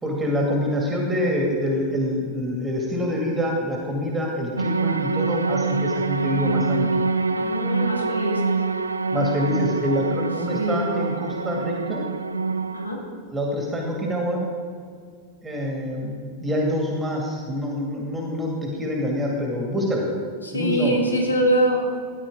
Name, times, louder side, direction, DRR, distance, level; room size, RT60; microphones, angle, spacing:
voice 1, 0.0-6.9 9.1-12.0 13.3-14.4 15.4-20.1 20.5-21.0, equal, 15° right, -1 dB, 2.2 m, -26 dB
sound 1, 4.6-12.9, right 4 dB, 80° right, 0.4 m, -25 dB
voice 2, 7.3-8.4 10.5-10.9 12.7-13.0 20.4-21.8, right 1 dB, 80° left, 0 dB, 1.9 m, -23 dB
14.5 x 10.0 x 3.7 m, 2.1 s
figure-of-eight pair, 90°, 0 cm